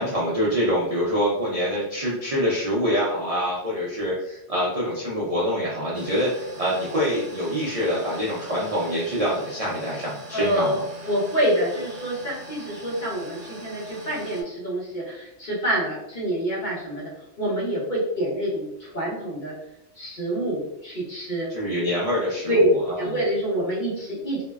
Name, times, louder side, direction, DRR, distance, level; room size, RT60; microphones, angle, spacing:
voice 1, 0.0-10.8 21.5-23.2, equal, 50° right, -7 dB, 0.5 m, -25 dB
sound 1, 5.9-14.4, right 1 dB, 80° right, 0.9 m, -42 dB
voice 2, 10.3-17.1 17.4-19.5 20.0-21.5 22.5-22.7 23.0-24.4, right 1 dB, 45° left, -6 dB, 1.0 m, -26 dB
2.6 x 2.0 x 2.3 m, 0.80 s
omnidirectional pair, 1.2 m